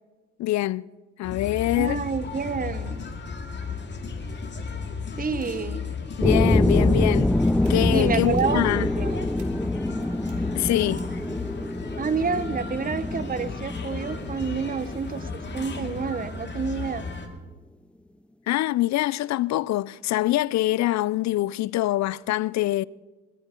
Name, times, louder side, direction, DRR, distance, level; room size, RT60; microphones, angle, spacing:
voice 1, 0.4-0.9 1.2-2.0 6.2-7.4 7.7-8.9 10.5-11.1 18.5-22.8, left 15 dB, 65° left, 0.4 m, -24 dB
sound 1, 1.2-17.3, left 5 dB, 35° left, 2.1 m, -34 dB
voice 2, 1.8-3.0 5.2-5.8 7.9-9.2 12.0-17.0, right 5 dB, 30° right, 0.9 m, -29 dB
sound 2, 6.2-16.3, left 1 dB, 5° left, 0.4 m, -25 dB
sound 3, 6.5-6.8 7.3-7.7 8.2-8.5 9.4-9.5 10.1-10.3 11.0-11.1, right 8 dB, 75° right, 2.6 m, -55 dB
21.5 x 13.5 x 3.7 m
cardioid pair, 90°, 30 cm